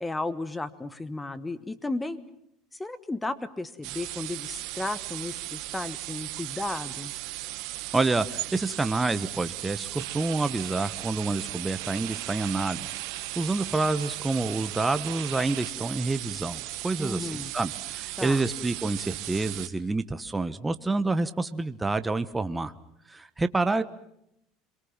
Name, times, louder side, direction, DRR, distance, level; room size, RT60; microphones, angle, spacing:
voice 1, 0.0-2.2 2.8-7.1 17.0-17.5 18.2-18.4, left 2 dB, 10° left, 14 dB, 1.5 m, -34 dB
sound 1, 3.8-19.7, right 18 dB, 65° right, 2.1 m, -37 dB
voice 2, 7.9-12.9 13.4-22.7 23.1-23.8, right 3 dB, 10° right, 10 dB, 1.1 m, -28 dB
sound 2, 10.0-15.7, right 17 dB, 85° right, 1.9 m, -42 dB
27.0 x 23.0 x 7.3 m, 0.78 s
cardioid pair, 135°, 0 cm